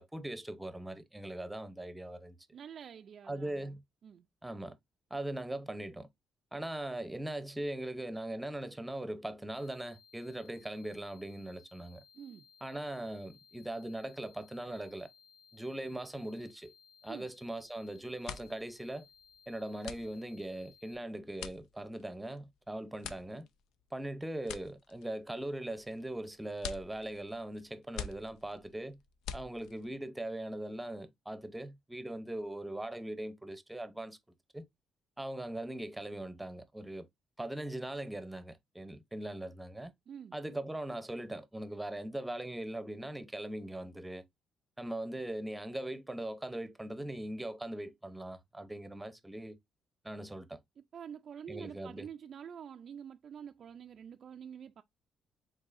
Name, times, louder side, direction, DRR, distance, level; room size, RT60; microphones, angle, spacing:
voice 1, 0.0-2.4 3.3-3.8 4.4-4.8 5.1-6.1 6.5-12.0 12.6-15.1 15.5-16.7 17.0-19.1 19.5-23.5 23.9-29.0 29.3-34.2 34.5-34.7 35.2-37.1 37.4-39.9 40.3-44.2 44.8-49.6 50.0-50.6 51.5-52.1, right 1 dB, 10° right, 0.8 m, -40 dB
voice 2, 2.5-3.8 4.0-4.3 12.1-12.4 17.1-17.3 40.1-40.4 50.9-54.8, right 8 dB, 55° right, 0.3 m, -47 dB
sound 1, 9.5-21.0, left 7 dB, 60° left, 1.5 m, -62 dB
sound 2, 17.5-17.8 18.1-30.0, left 8 dB, 85° left, 0.5 m, -47 dB
5.3 x 3.8 x 2.5 m
cardioid pair, 90°, 0 cm